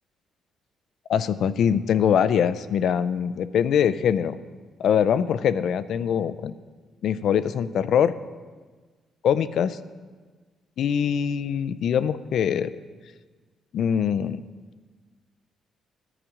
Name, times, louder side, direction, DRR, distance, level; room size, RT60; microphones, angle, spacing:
voice 1, 1.1-4.4 4.8-6.5 7.0-8.1 9.2-9.8 10.8-12.7 13.7-14.4, left 8 dB, 70° left, 14 dB, 0.4 m, -23 dB
11.0 x 5.0 x 8.3 m, 1.4 s
cardioid pair, 90°, 0 cm